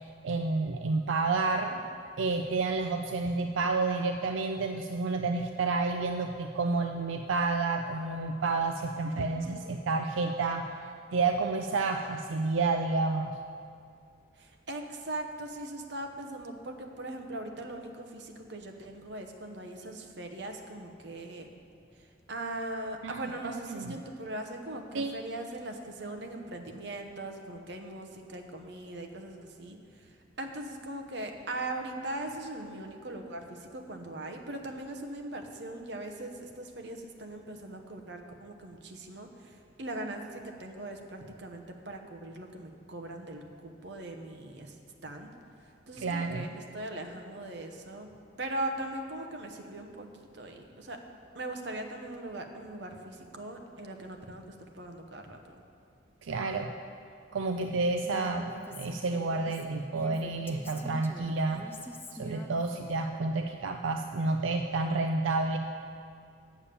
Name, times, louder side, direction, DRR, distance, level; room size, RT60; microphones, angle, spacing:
voice 1, 0.0-1.8 2.2-10.6 11.1-13.3 23.0-23.9 24.9-25.1 46.0-46.5 56.2-56.7 57.3-61.7 62.2-65.6, right 3 dB, 85° right, 5 dB, 0.4 m, -30 dB
voice 2, 9.3-9.9 14.4-21.5 22.0-44.7 45.0-45.3 45.9-48.1 48.4-51.0 51.3-55.4 57.5-57.9, right 1 dB, 60° right, 4 dB, 0.9 m, -40 dB
Female speech woman speaking, 58.0-63.1, left 1 dB, 10° left, 0.5 m, -46 dB
8.7 x 7.2 x 6.8 m, 2.4 s
head